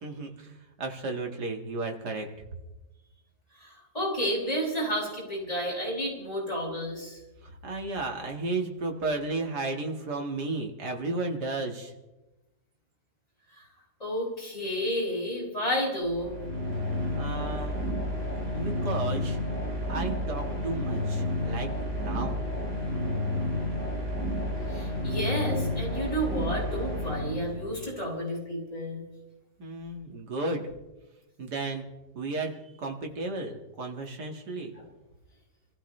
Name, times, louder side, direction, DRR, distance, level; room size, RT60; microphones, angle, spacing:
voice 1, 0.0-2.3 7.4-11.9 16.7-16.8 17.1-17.8 18.5-19.4 19.9-21.7 21.9-22.4 29.6-30.7 31.4-31.9 32.1-32.5 32.8-34.7, right 3 dB, 75° right, 2 dB, 2.5 m, -33 dB
voice 2, 3.6-7.2 14.0-16.3 24.7-29.0 34.8-34.9, equal, 20° left, -6 dB, 7.6 m, -31 dB
sound 1, 16.0-27.9, left 1 dB, 40° right, 7.1 m, -31 dB
27.5 x 15.0 x 3.3 m, 1.0 s
omnidirectional pair, 1.8 m